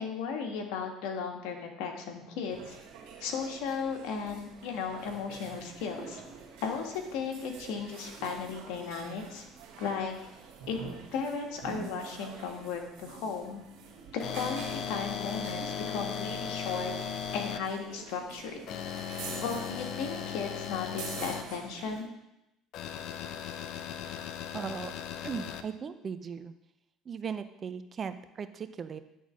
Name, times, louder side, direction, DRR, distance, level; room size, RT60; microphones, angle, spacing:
voice 1, 0.0-2.8 3.2-6.2 6.6-9.4 9.8-10.1 10.7-10.8 11.1-13.6 14.1-16.9 17.3-18.6 19.1-22.1, left 5 dB, 80° left, 3 dB, 1.5 m, -35 dB
sound 1, 2.5-22.0, right 5 dB, 75° right, 2.0 m, -47 dB
sound 2, 14.2-17.6 18.7-21.4 22.7-25.6, left 8 dB, 60° left, 0.7 m, -37 dB
voice 2, 24.5-24.9 25.2-26.5 27.1-29.0, right 6 dB, 40° right, 11 dB, 0.6 m, -38 dB
10.0 x 4.0 x 6.3 m, 0.88 s
supercardioid pair, 95°, 0 cm